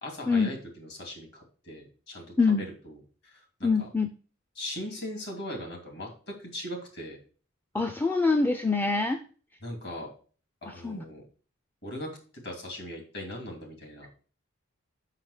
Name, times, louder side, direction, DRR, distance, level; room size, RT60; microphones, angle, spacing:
voice 1, 0.0-2.2 2.6-3.0 3.3-3.9 4.6-7.2 9.6-10.1 10.6-11.2 11.8-12.1 12.4-14.1, left 1 dB, 50° left, 2 dB, 2.7 m, -39 dB
voice 2, 3.6-4.1 7.7-9.2 10.8-11.0, left 4 dB, 10° left, 6 dB, 0.4 m, -24 dB
5.7 x 5.7 x 6.4 m, 0.39 s
head